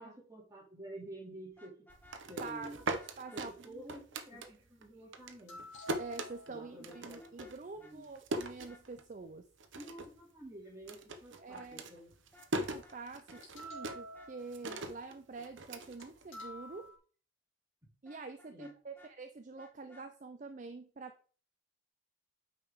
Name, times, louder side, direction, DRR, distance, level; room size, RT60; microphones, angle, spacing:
voice 1, 0.0-1.9 2.3-2.8 3.3-5.6 6.5-8.1 9.8-12.1 18.5-18.7, right 1 dB, 15° right, -2 dB, 2.5 m, -50 dB
Vehicle horn car horn honking, 1.5-2.6 3.0-3.4 6.9-7.5 7.8-7.9 8.4-8.8 12.2-13.0 13.3-13.5 13.8-14.3 18.1-19.1 19.6-20.1, left 2 dB, 10° left, 1.3 m, -60 dB
sound 1, 1.9-4.8 5.1-9.3 9.6-10.2 10.5-16.7, right 2 dB, 65° right, 0.8 m, -41 dB
voice 2, 2.4-3.9 5.9-9.5 11.4-11.8 12.5-16.9 18.0-21.3, right 4 dB, 35° right, 8 dB, 0.5 m, -46 dB
sound 2, 5.5-6.8 13.4-14.8 15.8-16.0 16.3-17.0, equal, 75° left, 2.7 m, -49 dB
8.9 x 5.2 x 3.6 m, 0.42 s
head